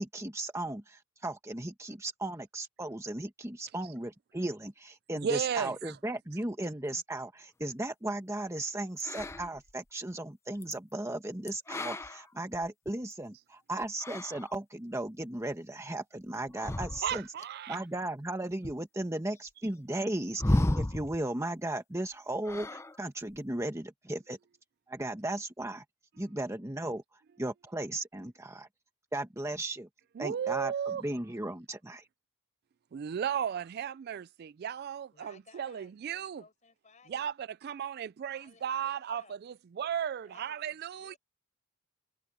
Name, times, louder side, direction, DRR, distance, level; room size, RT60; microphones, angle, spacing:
voice 1, 0.0-17.2 17.7-24.4 24.9-25.8 26.2-27.0 27.4-28.7 29.1-29.9 30.2-30.7 31.0-32.1, right 1 dB, 15° right, 1.1 m, -36 dB
voice 2, 5.2-6.0 17.0-17.8 30.2-31.0 32.9-36.4 37.1-41.2, right 8 dB, 50° right, 0.3 m, -35 dB
sound 1, 9.0-9.7 10.6-10.7 11.5-13.1 13.8-14.5 16.5-17.4 18.6-18.7 20.4-21.2 22.4-23.0 23.3-23.6, left 1 dB, 15° left, 0.6 m, -32 dB
voice 3, 35.1-37.3 38.3-39.4 40.2-41.2, left 4 dB, 35° left, 5.6 m, -60 dB
head